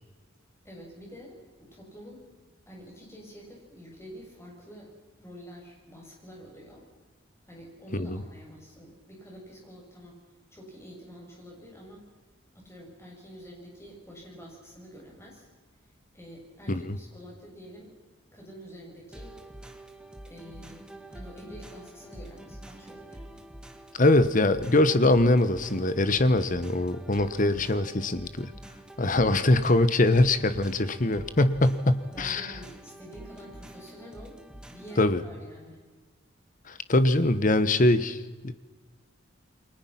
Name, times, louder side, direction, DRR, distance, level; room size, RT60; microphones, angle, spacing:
voice 1, 0.6-2.3 2.7-6.9 7.4-10.2 10.5-12.1 12.5-15.5 16.1-17.9 18.3-19.3 20.3-23.4 27.4-27.7 32.1-34.4 34.7-35.8, equal, 15° left, -1 dB, 7.5 m, -47 dB
sound 1, 19.1-35.1, right 1 dB, 5° right, 1.9 m, -46 dB
voice 2, 23.9-28.5 29.0-32.5 35.0-35.2 36.7-38.2 38.4-38.5, left 2 dB, 40° left, 13 dB, 1.2 m, -23 dB
29.5 x 23.0 x 5.9 m, 1.3 s
head